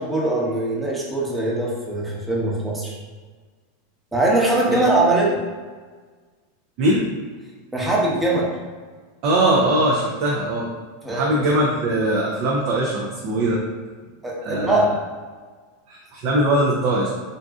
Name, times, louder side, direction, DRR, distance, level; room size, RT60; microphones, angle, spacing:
voice 1, 0.0-3.0 4.1-5.4 7.7-8.5 11.0-11.5 14.2-14.9, right 2 dB, 10° right, -4 dB, 0.8 m, -21 dB
voice 2, 9.2-10.7 11.1-13.6 14.4-14.8 15.9-17.1, right 1 dB, 50° right, -3 dB, 0.5 m, -21 dB
3.9 x 2.3 x 2.4 m, 1.4 s
hypercardioid pair, 90°, 0 cm